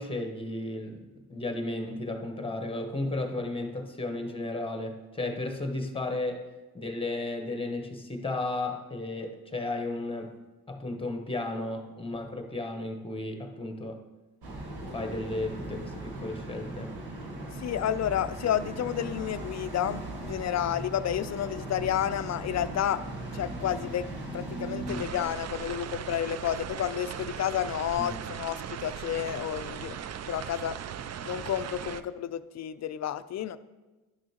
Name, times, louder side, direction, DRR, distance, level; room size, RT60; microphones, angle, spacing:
voice 1, 0.0-6.5 6.7-10.3 10.7-14.0 14.9-16.9 28.0-28.2, left 2 dB, 15° left, 5 dB, 1.1 m, -34 dB
sound 1, 14.4-25.0, right 2 dB, 80° right, 1.5 m, -38 dB
voice 2, 17.6-23.0 23.3-30.0 30.3-30.8 31.2-33.6, left 10 dB, 45° left, 14 dB, 0.4 m, -31 dB
sound 2, 24.9-32.0, right 8 dB, 45° right, 0.4 m, -38 dB
11.0 x 6.1 x 2.9 m, 1.2 s
cardioid pair, 70°, 38 cm